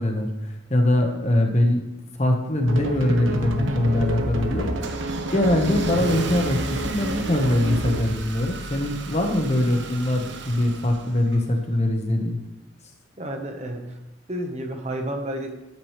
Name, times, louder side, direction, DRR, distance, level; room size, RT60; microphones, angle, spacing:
voice 1, 0.0-1.8 2.2-5.0 5.3-12.4, left 1 dB, 35° left, 3 dB, 1.4 m, -22 dB
sound 1, 2.7-8.2, right 1 dB, 85° right, 1.3 m, -28 dB
Car / Engine starting, 3.6-11.7, right 3 dB, 65° right, 1.1 m, -37 dB
voice 2, 13.2-14.0 14.3-15.5, right 1 dB, 35° right, 4 dB, 1.4 m, -31 dB
11.5 x 9.8 x 3.4 m, 1.0 s
head